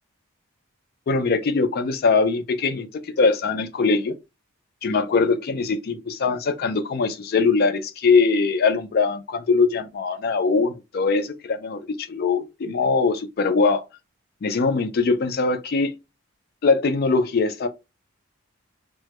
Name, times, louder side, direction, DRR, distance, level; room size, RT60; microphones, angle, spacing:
voice 1, 1.1-2.9 3.2-4.1 4.8-13.8 14.4-15.9 16.6-17.7, left 4 dB, 45° left, 0.3 m, -21 dB
2.2 x 2.0 x 2.8 m
head